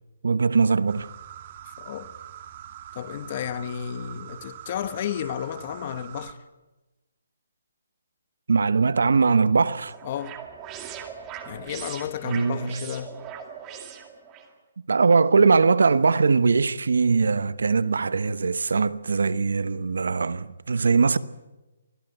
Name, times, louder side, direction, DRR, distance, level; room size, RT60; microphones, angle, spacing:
voice 1, 0.2-1.1 8.5-10.0 12.2-12.8 14.9-21.2, right 4 dB, 80° right, 1.1 m, -21 dB
sound 1, 0.9-6.3, right 10 dB, 35° right, 1.8 m, -43 dB
voice 2, 1.8-2.1 2.9-6.4 10.0-10.4 11.5-13.2, left 9 dB, 35° left, 1.3 m, -32 dB
sound 2, 9.5-14.5, right 8 dB, 20° right, 2.2 m, -40 dB
25.0 x 17.5 x 8.1 m
hypercardioid pair, 160°, 0 cm